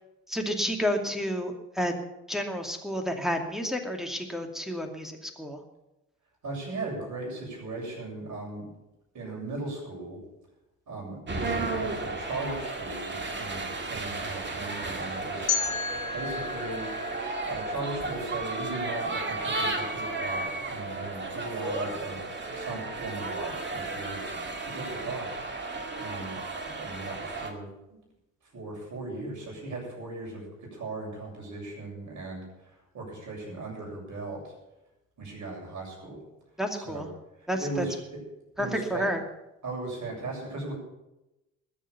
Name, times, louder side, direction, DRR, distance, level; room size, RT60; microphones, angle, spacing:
voice 1, 0.3-2.0 2.3-5.6 36.6-37.1 37.5-37.8 38.6-39.2, equal, ahead, 4 dB, 2.5 m, -30 dB
voice 2, 6.4-8.7 9.1-10.2 10.9-15.5 16.1-16.9 17.4-25.3 25.5-28.0 28.5-34.5 35.2-36.2 36.7-37.1 37.6-38.2 38.6-39.1 39.6-40.7, right 2 dB, 45° right, -1 dB, 7.6 m, -38 dB
sound 1, 11.3-27.5, right 2 dB, 25° right, 2.3 m, -34 dB
sound 2, 15.5-18.4, left 6 dB, 80° left, 1.7 m, -33 dB
21.0 x 7.4 x 6.9 m, 0.94 s
figure-of-eight pair, 50°, 40 cm